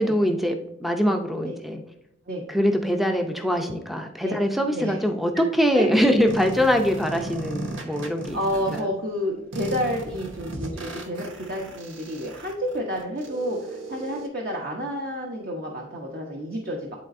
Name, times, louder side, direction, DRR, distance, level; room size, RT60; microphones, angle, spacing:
voice 1, 0.0-1.8 2.5-8.4 8.7-8.9, equal, ahead, 4 dB, 0.5 m, -23 dB
sound 1, 6.3-8.8 9.5-14.3, right 2 dB, 75° right, 1.1 m, -36 dB
voice 2, 8.3-17.0, equal, 50° right, -1 dB, 1.0 m, -30 dB
10.5 x 4.1 x 2.6 m, 0.82 s
head